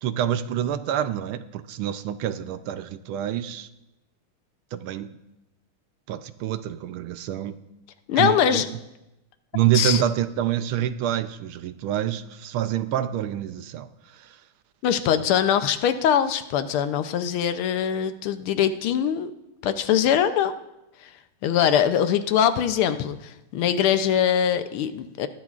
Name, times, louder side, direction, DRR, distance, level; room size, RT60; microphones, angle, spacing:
voice 1, 0.0-3.7 4.7-5.1 6.1-7.5 8.2-8.6 9.5-14.4, right 11 dB, 75° right, 12 dB, 1.4 m, -27 dB
voice 2, 8.1-8.7 9.7-10.0 14.8-19.3 19.6-20.5 21.0-21.1 21.4-25.3, left 9 dB, 80° left, 10 dB, 1.5 m, -22 dB
19.5 x 13.5 x 2.4 m, 0.93 s
omnidirectional pair, 2.4 m